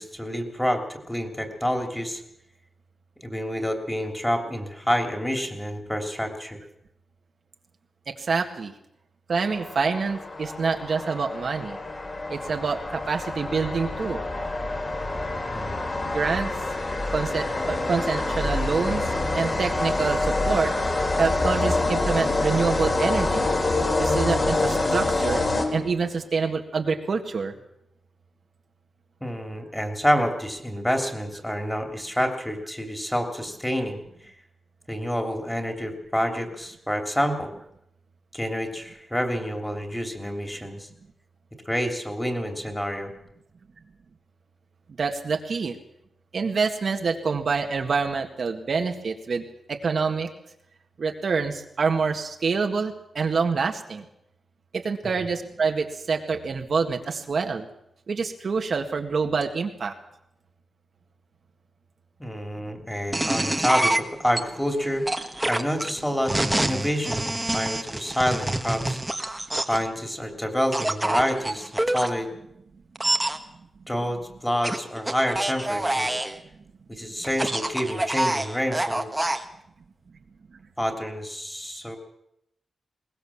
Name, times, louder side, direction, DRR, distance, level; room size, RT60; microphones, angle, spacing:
voice 1, 0.0-2.2 3.2-6.6 15.5-15.8 24.4-24.7 29.2-34.0 34.9-37.5 38.3-40.9 41.6-43.1 55.0-55.2 62.2-65.0 65.4-69.0 69.7-72.3 73.0-73.1 73.9-76.2 76.9-79.1 80.8-82.0, equal, 5° left, 5 dB, 3.1 m, -28 dB
voice 2, 8.1-8.7 9.3-11.8 12.3-14.2 16.0-16.5 17.1-19.0 19.3-20.7 21.2-23.5 24.0-25.4 25.7-27.5 45.0-45.8 46.3-50.3 51.0-54.0 54.7-57.7 58.1-59.9, right 5 dB, 55° right, 4 dB, 1.8 m, -26 dB
sound 1, 9.3-26.2, left 2 dB, 35° left, 3.8 m, -26 dB
sound 2, 63.1-64.4 65.1-69.9 70.7-72.1 73.0-73.4 74.6-76.4 77.2-79.4, right 1 dB, 10° right, 1.5 m, -26 dB
21.5 x 19.0 x 7.3 m, 0.80 s
wide cardioid pair, 120°, 0 cm